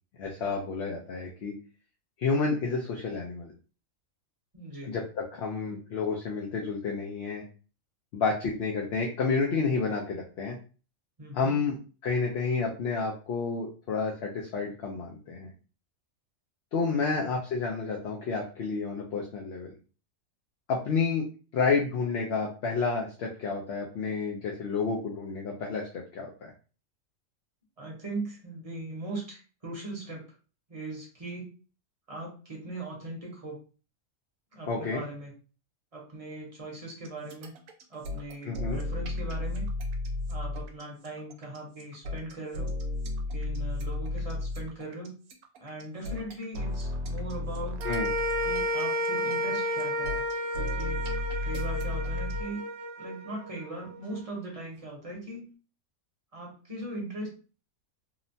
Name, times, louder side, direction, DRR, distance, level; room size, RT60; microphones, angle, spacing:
voice 1, 0.2-1.5 2.2-3.5 4.8-7.4 8.1-10.6 11.3-11.8 12.0-15.5 16.7-19.7 20.7-21.2 21.5-26.3 34.7-35.0 38.4-38.8 47.8-48.1, left 4 dB, 65° left, -1 dB, 0.7 m, -30 dB
voice 2, 4.5-4.9 11.2-11.6 17.1-17.2 27.8-30.2 30.7-31.5 32.1-33.6 34.5-35.3 35.9-37.5 37.9-39.7 40.3-42.7 43.3-45.2 45.6-47.8 48.4-50.1 50.6-51.0 51.4-52.6 53.0-55.4 56.3-57.3, right 2 dB, 30° right, -2 dB, 0.8 m, -39 dB
sound 1, 37.1-52.4, left 2 dB, 80° right, 1.0 m, -34 dB
sound 2, 47.8-54.2, equal, 60° right, 0.7 m, -32 dB
2.9 x 2.1 x 2.6 m, 0.36 s
omnidirectional pair, 1.4 m